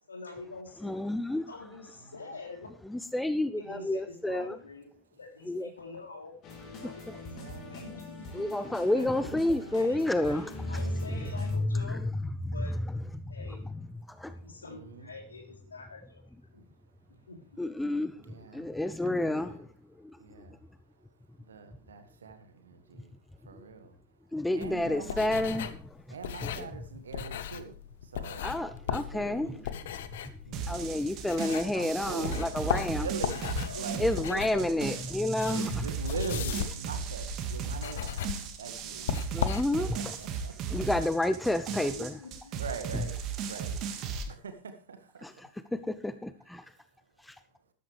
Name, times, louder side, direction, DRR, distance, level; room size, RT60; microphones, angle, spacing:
voice 1, 0.1-1.0 1.5-2.7 3.5-6.4 6.7-7.3 7.7-9.1 9.7-12.0 12.5-12.7 13.3-13.6 14.3-16.2 16.5-16.7 17.3-17.6 31.4-31.7 32.1-32.4 33.6-33.9 41.7-42.6, left 3 dB, 75° left, 3.3 m, -46 dB
voice 2, 0.8-1.5 2.9-4.6 5.5-5.7 6.8-7.2 8.3-10.5 11.2-12.1 12.9-13.3 14.1-14.4 17.6-19.7 20.0-20.2 23.5-23.6 24.3-26.0 26.4-26.7 28.4-29.6 30.7-33.1 34.0-35.8 39.3-40.0 40.7-42.2 45.2-46.6 47.2-47.4, left 1 dB, 5° left, 0.6 m, -30 dB
voice 3, 2.0-2.4 7.2-8.0 9.0-9.8 14.7-15.1 18.2-18.7 19.0-19.6 20.2-20.6 21.0-21.1 21.4-24.0 24.5-25.3 26.1-28.5 28.8-29.7 30.4-31.0 31.7-35.1 35.5-39.1 39.8-40.8 42.6-43.8 44.3-45.5 46.6-46.7, right 5 dB, 70° right, 1.8 m, -43 dB
sound 1, 6.4-11.6, left 2 dB, 35° left, 3.8 m, -44 dB
sound 2, 24.6-31.9 32.2-40.1, left 10 dB, 55° left, 0.9 m, -37 dB
sound 3, 30.5-44.2, right 6 dB, 35° right, 1.9 m, -36 dB
13.5 x 12.5 x 3.3 m
figure-of-eight pair, 90°, 0 cm